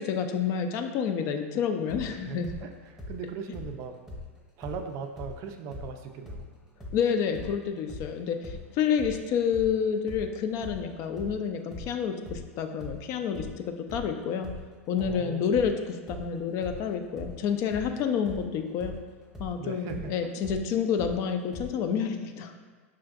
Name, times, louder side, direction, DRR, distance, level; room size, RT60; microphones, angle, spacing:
voice 1, 0.0-2.5 6.9-13.6 13.9-14.5 14.9-18.9 19.4-22.5, left 7 dB, 45° left, 6 dB, 0.4 m, -29 dB
sound 1, 1.9-5.4 5.7-13.6 13.9-21.7, left 2 dB, 5° right, 0.9 m, -42 dB
voice 2, 2.1-4.0 4.6-6.5 15.0-15.5 19.6-20.1, right 5 dB, 45° right, 5 dB, 0.4 m, -39 dB
5.6 x 2.5 x 2.4 m, 1.4 s
hypercardioid pair, 100°, 7 cm